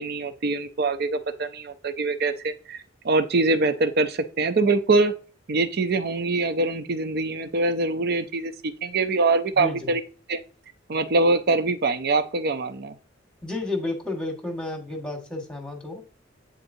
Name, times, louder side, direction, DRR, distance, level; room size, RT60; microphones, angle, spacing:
voice 1, 0.0-5.1 5.5-10.0 10.3-10.4 10.9-13.0, right 3 dB, 55° right, 10 dB, 0.6 m, -24 dB
voice 2, 9.6-9.9 13.4-16.0, left 2 dB, 5° left, 2 dB, 1.4 m, -31 dB
9.2 x 3.9 x 2.6 m, 0.37 s
head